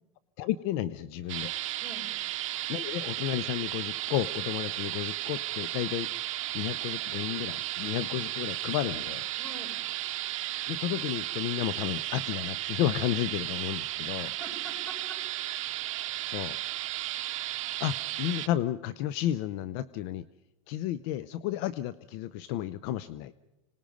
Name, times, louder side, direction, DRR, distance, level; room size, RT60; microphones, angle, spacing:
voice 1, 0.4-1.5 2.7-6.1 6.5-9.3 10.7-14.3 16.3-16.6 17.8-20.2 20.7-23.3, left 13 dB, 55° left, 17 dB, 0.6 m, -32 dB
sound 1, 1.3-18.5, right 15 dB, 70° right, 0.8 m, -34 dB
voice 2, 1.8-2.1 9.4-9.8 14.1-15.2, right 1 dB, 10° left, 1 dB, 7.3 m, -45 dB
25.5 x 19.5 x 5.3 m, 1.0 s
supercardioid pair, 120°, 17 cm